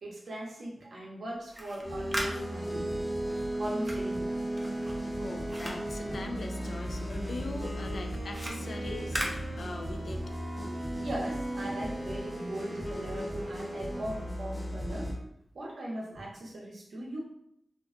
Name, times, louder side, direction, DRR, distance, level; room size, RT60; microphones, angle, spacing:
voice 1, 0.0-3.1 3.6-4.5 10.6-10.7 11.0-15.1 15.5-17.2, right 1 dB, 80° right, -3 dB, 0.6 m, -39 dB
sound 1, 1.4-6.9 7.2-10.2, right 1 dB, 30° right, 0.5 m, -40 dB
sound 2, 1.8-15.1, right 1 dB, 15° left, 1.0 m, -35 dB
voice 2, 5.2-9.2 9.6-10.2, left 2 dB, 75° left, 5 dB, 0.3 m, -41 dB
Wind instrument woodwind instrument, 6.5-15.2, left 1 dB, 45° left, 0.7 m, -46 dB
2.5 x 2.2 x 2.4 m, 0.75 s
wide cardioid pair, 65°, 0 cm